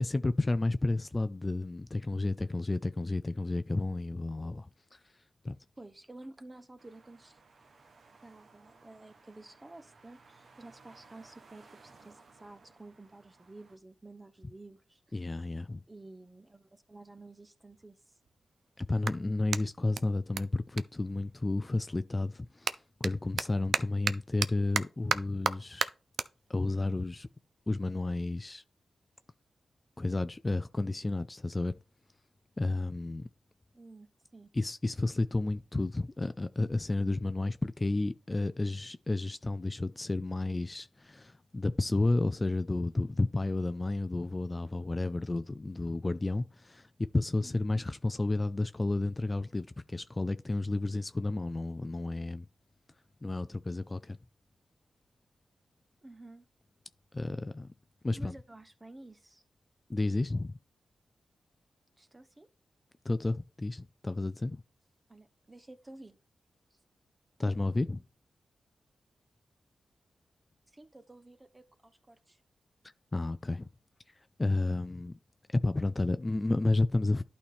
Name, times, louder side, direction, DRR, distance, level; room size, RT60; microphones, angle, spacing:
voice 1, 0.0-5.1 5.4-5.6 15.1-15.8 18.8-25.9 26.5-27.3 27.7-28.6 30.0-31.7 32.6-33.3 34.5-52.5 53.2-54.2 57.1-57.7 58.0-58.4 59.9-60.6 63.0-64.6 67.4-68.0 73.1-73.7 74.2-75.2 75.5-77.2, left 2 dB, 25° left, 0.4 m, -31 dB
voice 2, 5.8-7.4 8.2-15.0 15.9-18.0 33.7-34.5 47.4-47.8 56.0-56.5 58.1-59.4 62.0-62.5 65.1-66.2 70.7-72.4, right 2 dB, 20° right, 0.9 m, -52 dB
sound 1, 6.8-13.8, right 4 dB, 65° right, 1.1 m, -59 dB
Clapping, 16.9-17.0 17.7-21.7 22.0-28.7, right 6 dB, 80° right, 0.5 m, -37 dB
11.5 x 4.2 x 3.5 m
cardioid pair, 80°, 0 cm